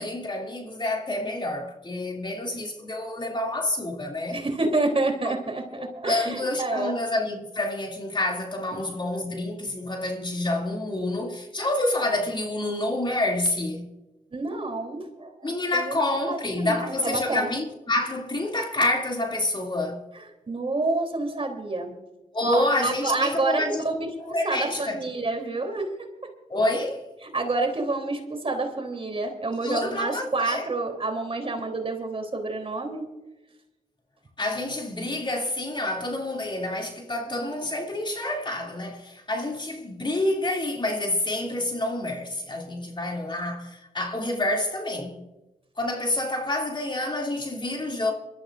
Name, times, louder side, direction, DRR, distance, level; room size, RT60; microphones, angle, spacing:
voice 1, 0.0-4.4 5.7-13.9 15.4-20.0 22.3-23.8 24.2-25.0 26.5-27.1 29.6-30.6 34.4-45.2 45.8-48.1, left 1 dB, 35° left, 2.8 m, -28 dB
voice 2, 4.3-6.9 8.7-8.9 14.3-16.0 16.3-17.5 20.1-21.9 22.4-25.9 26.2-26.3 27.3-33.0, right 2 dB, 40° right, 3.4 m, -28 dB
26.5 x 13.0 x 2.6 m
cardioid pair, 60°, 14 cm